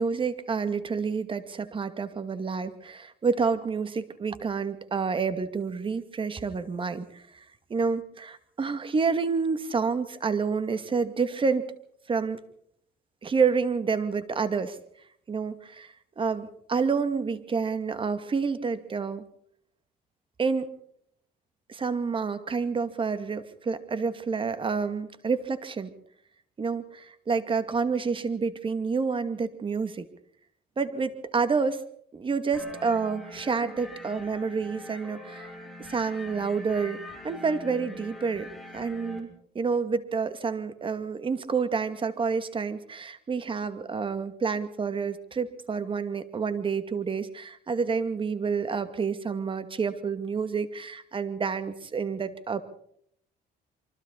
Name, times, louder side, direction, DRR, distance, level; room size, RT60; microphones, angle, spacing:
voice 1, 0.0-7.4 7.7-11.6 12.1-12.4 13.2-14.8 15.3-19.2 20.4-20.7 21.7-25.9 26.6-30.1 30.8-31.8 32.1-39.3 39.5-52.6, right 5 dB, 30° right, 10 dB, 2.4 m, -29 dB
sound 1, 32.5-39.2, left 2 dB, ahead, 6.3 m, -43 dB
27.5 x 24.5 x 4.2 m, 0.67 s
cardioid pair, 110°, 17 cm